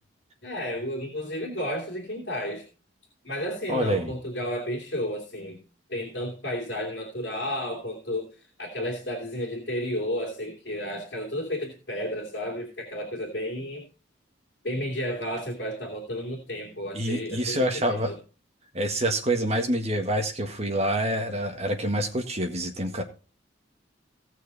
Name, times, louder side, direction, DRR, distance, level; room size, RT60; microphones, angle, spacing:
voice 1, 0.4-2.7 3.2-5.6 5.9-13.9 14.6-18.2, equal, 55° left, 0 dB, 2.8 m, -32 dB
voice 2, 3.7-4.1 16.9-18.2 18.7-23.0, right 1 dB, 35° right, 4 dB, 1.7 m, -27 dB
17.5 x 6.4 x 4.1 m, 0.34 s
head